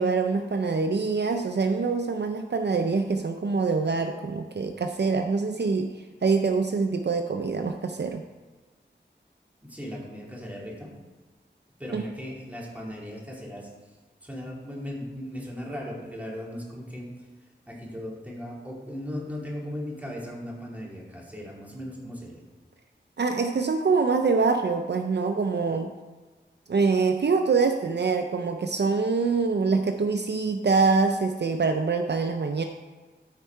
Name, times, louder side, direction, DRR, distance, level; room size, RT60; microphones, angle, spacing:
voice 1, 0.0-8.2 11.9-12.0 23.2-25.9 26.7-32.6, right 4 dB, 60° right, 6 dB, 0.5 m, -25 dB
voice 2, 9.6-10.9 11.8-13.7 14.2-17.2 17.7-22.4, equal, 10° right, -3 dB, 2.6 m, -37 dB
13.5 x 4.7 x 4.5 m, 1.4 s
wide cardioid pair, 70°, 19 cm